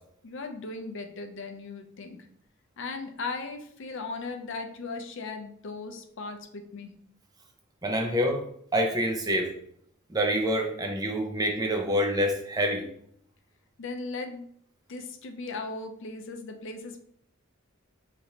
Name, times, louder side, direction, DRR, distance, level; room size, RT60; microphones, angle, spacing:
voice 1, 0.2-2.2 2.8-6.9 13.8-14.4 14.9-17.0, left 3 dB, 65° left, 5 dB, 0.5 m, -37 dB
voice 2, 7.8-8.4 8.7-9.5 10.1-12.9, equal, 20° right, 2 dB, 0.6 m, -26 dB
5.0 x 3.0 x 2.8 m, 0.68 s
head